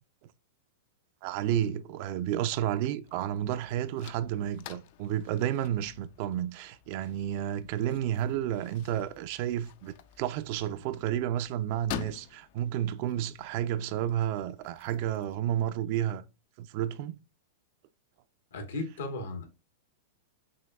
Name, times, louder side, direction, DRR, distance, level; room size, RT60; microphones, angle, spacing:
voice 1, 1.2-16.2 16.6-17.2, right 11 dB, 50° right, 0.4 m, -31 dB
sound 1, 3.0-15.4, left 10 dB, 55° left, 0.4 m, -48 dB
voice 2, 18.5-19.4, left 2 dB, 80° left, 1.2 m, -35 dB
6.2 x 2.2 x 2.2 m
hypercardioid pair, 130°, 0 cm